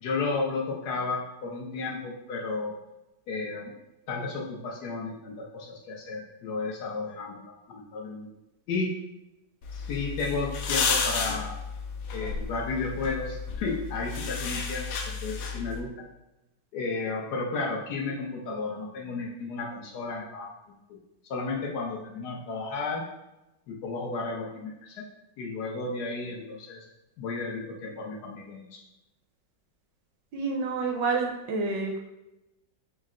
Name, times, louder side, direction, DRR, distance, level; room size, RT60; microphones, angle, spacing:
voice 1, 0.0-2.8 3.3-3.8 4.1-8.3 8.7-9.0 9.7-11.6 12.1-16.0 16.7-21.0 21.3-23.0 23.7-25.1 25.4-26.8 27.2-28.8, left 3 dB, 70° left, -2 dB, 1.2 m, -33 dB
sound 1, 9.6-15.8, left 5 dB, 85° left, 1.3 m, -32 dB
voice 2, 30.3-32.0, right 4 dB, 75° right, 2 dB, 1.3 m, -28 dB
5.6 x 2.1 x 3.6 m, 0.94 s
omnidirectional pair, 2.0 m